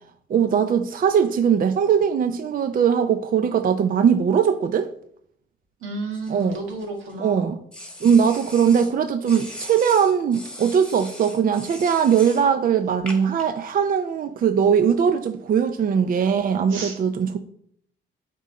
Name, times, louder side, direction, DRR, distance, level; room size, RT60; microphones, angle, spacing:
voice 1, 0.3-4.9 6.3-6.6 7.2-7.6 8.0-17.4, right 7 dB, 45° right, 0.5 m, -20 dB
voice 2, 5.8-7.5 16.7-17.0, right 2 dB, 85° right, 1.9 m, -32 dB
sound 1, 6.1-7.1 7.7-8.9 9.3-12.5 13.1-13.4, left 1 dB, 5° left, 1.7 m, -39 dB
9.1 x 3.8 x 4.2 m
cardioid pair, 90°, 20 cm